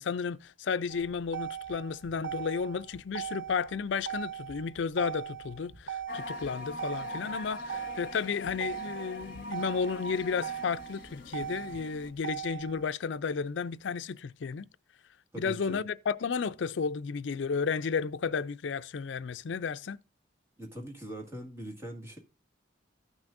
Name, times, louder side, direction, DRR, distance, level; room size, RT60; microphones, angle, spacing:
voice 1, 0.0-14.7 15.4-20.0, left 5 dB, 65° left, 0.4 m, -33 dB
Motor vehicle (road), 0.9-12.9, right 9 dB, 70° right, 0.9 m, -40 dB
sound 1, 6.1-12.1, left 2 dB, 45° left, 1.9 m, -42 dB
voice 2, 15.3-15.8 20.6-22.2, right 1 dB, 15° right, 1.9 m, -41 dB
14.5 x 6.2 x 2.5 m
head